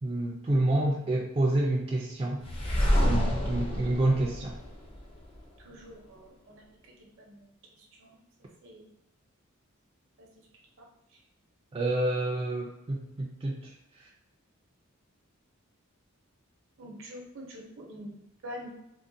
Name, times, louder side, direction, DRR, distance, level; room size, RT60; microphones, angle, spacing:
voice 1, 0.0-2.4 3.0-4.6 11.7-13.7, right 1 dB, 25° right, -3 dB, 0.3 m, -28 dB
sound 1, 2.4-5.4, equal, 25° left, 0.5 m, -28 dB
voice 2, 5.6-6.6 7.2-7.4 8.0-8.2 8.6-8.9 10.2-10.3 16.8-18.7, equal, 65° right, -1 dB, 0.8 m, -45 dB
3.7 x 2.1 x 2.6 m, 0.84 s
head